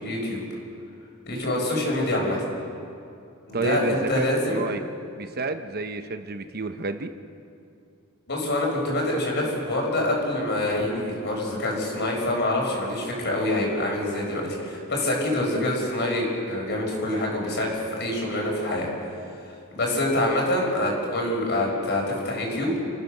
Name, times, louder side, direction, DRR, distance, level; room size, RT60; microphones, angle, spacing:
voice 1, 0.0-0.4 1.3-2.4 3.5-4.6 8.3-18.9 19.7-22.7, left 1 dB, 55° left, -1 dB, 6.0 m, -26 dB
voice 2, 3.5-4.8 5.2-7.1, right 3 dB, 45° right, 8 dB, 0.9 m, -30 dB
30.0 x 15.0 x 6.7 m, 2.6 s
head